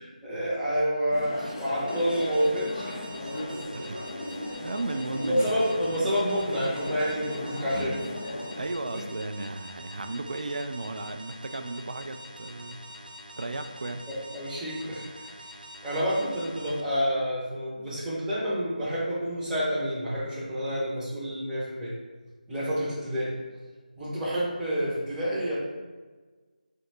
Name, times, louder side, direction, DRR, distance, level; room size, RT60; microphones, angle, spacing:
voice 1, 0.0-3.1 5.3-8.0 8.9-9.0 14.1-15.3 15.8-21.9 22.5-23.3 23.9-25.5, equal, 5° right, -11 dB, 0.7 m, -28 dB
sound 1, 1.1-8.7, left 1 dB, 25° left, 0.4 m, -36 dB
sound 2, 1.9-16.8, equal, 80° right, 0.7 m, -46 dB
voice 2, 4.6-5.5 8.6-13.1 13.4-14.1, right 2 dB, 55° right, 8 dB, 0.3 m, -35 dB
3.4 x 2.8 x 4.1 m, 1.4 s
figure-of-eight pair, 160°, 5 cm